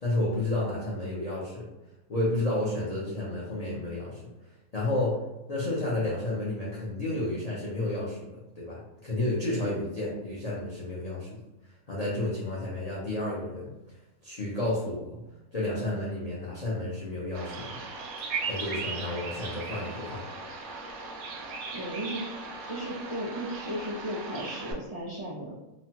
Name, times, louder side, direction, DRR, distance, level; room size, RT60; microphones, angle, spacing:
voice 1, 0.0-1.7 2.1-4.2 4.7-5.2 5.5-11.4 11.9-13.7 14.2-15.2 15.5-17.8 18.5-20.2, left 1 dB, 50° left, -7 dB, 0.4 m, -31 dB
Bird vocalization bird call bird song, 17.3-24.7, right 4 dB, 75° right, 1.0 m, -37 dB
voice 2, 21.7-22.4 22.7-25.5, equal, 35° right, -9 dB, 0.6 m, -35 dB
3.0 x 2.1 x 2.8 m, 1.0 s
omnidirectional pair, 1.5 m